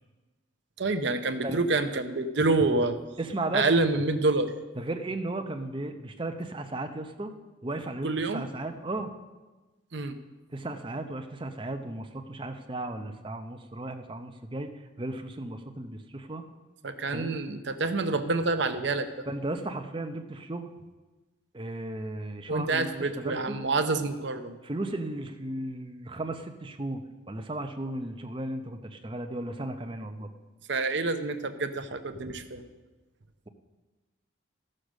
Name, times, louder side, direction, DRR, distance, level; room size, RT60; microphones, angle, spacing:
voice 1, 0.8-3.0 3.5-4.5 8.0-8.4 9.9-10.2 16.8-19.1 22.5-24.6 30.7-32.7, right 3 dB, 60° right, 8 dB, 0.8 m, -27 dB
voice 2, 3.2-3.7 4.8-7.3 7.6-9.1 10.5-14.7 15.0-16.4 17.1-17.5 19.3-20.7 21.5-23.6 24.6-30.3, right 2 dB, 25° right, 5 dB, 0.7 m, -35 dB
13.5 x 6.5 x 6.4 m, 1.2 s
head